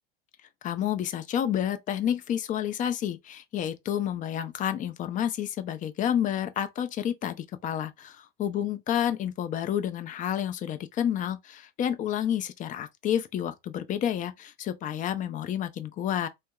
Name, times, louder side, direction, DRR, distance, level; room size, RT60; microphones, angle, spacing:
voice 1, 0.6-16.3, left 10 dB, 25° left, 0.5 m, -30 dB
2.9 x 2.1 x 3.7 m
hypercardioid pair, 110°, 29 cm